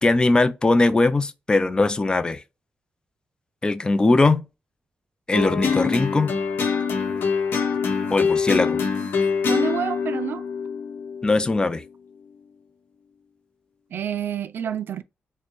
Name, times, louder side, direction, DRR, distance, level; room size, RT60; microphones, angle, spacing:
voice 1, 0.0-2.4 3.6-4.4 5.3-6.3 8.1-8.8 11.2-11.8, left 2 dB, 20° left, 0.5 m, -20 dB
sound 1, 5.3-11.8, left 5 dB, 85° left, 0.9 m, -24 dB
voice 2, 9.5-10.4 13.9-15.0, right 8 dB, 70° right, 0.3 m, -28 dB
4.1 x 2.2 x 3.0 m
wide cardioid pair, 115°, 4 cm